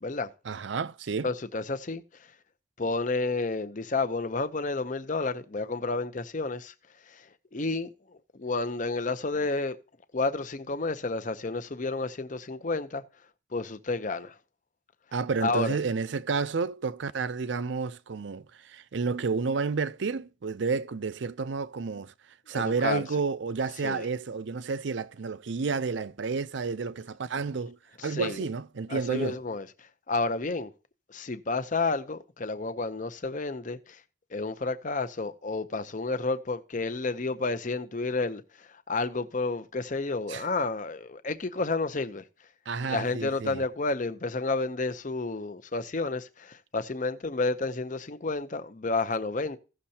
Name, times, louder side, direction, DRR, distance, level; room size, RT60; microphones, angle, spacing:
voice 1, 0.5-1.3 15.1-22.1 22.5-27.8 28.0-29.4 40.3-40.4 42.7-43.6, right 4 dB, 70° right, 0.5 m, -30 dB
voice 2, 1.2-2.0 2.8-6.7 7.1-7.3 7.5-7.9 8.4-9.8 10.1-13.0 13.5-14.4 15.4-15.8 22.5-23.0 23.8-24.1 28.0-28.4 28.9-29.7 30.1-30.7 31.1-34.0 34.3-42.2 42.8-49.6, left 3 dB, 40° left, 0.7 m, -30 dB
16.5 x 6.4 x 2.8 m
head